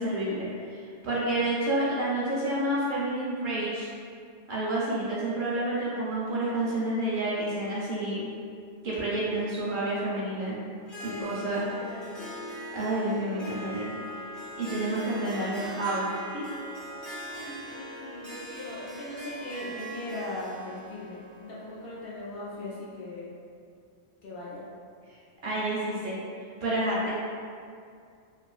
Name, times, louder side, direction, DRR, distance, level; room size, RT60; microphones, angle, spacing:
voice 1, 0.0-3.9 4.5-8.3 8.8-10.6 11.0-11.7 12.7-13.9 14.6-16.4 25.4-26.2 26.6-27.1, right 1 dB, 60° right, -7 dB, 0.6 m, -29 dB
Harp, 10.8-22.7, equal, ahead, 0.4 m, -41 dB
voice 2, 11.0-12.2 17.3-23.3 24.2-24.6, left 2 dB, 65° left, -6 dB, 0.7 m, -39 dB
2.7 x 2.4 x 2.3 m, 2.3 s
omnidirectional pair, 1.1 m